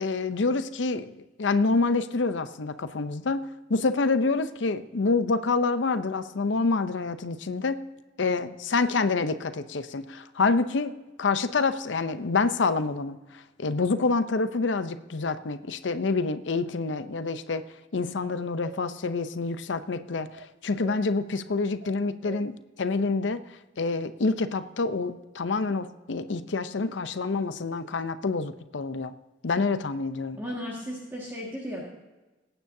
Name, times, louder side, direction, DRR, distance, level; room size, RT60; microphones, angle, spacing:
voice 1, 0.0-7.8 8.2-17.6 17.9-23.4 23.8-29.1 29.4-30.4, left 3 dB, 70° left, 11 dB, 0.6 m, -27 dB
sound 1, 18.2-18.8 20.3-21.0 21.8-22.5, right 6 dB, 45° right, 0.5 m, -45 dB
voice 2, 30.4-31.8, equal, 10° right, -4 dB, 1.7 m, -35 dB
21.0 x 9.1 x 2.7 m, 1.1 s
head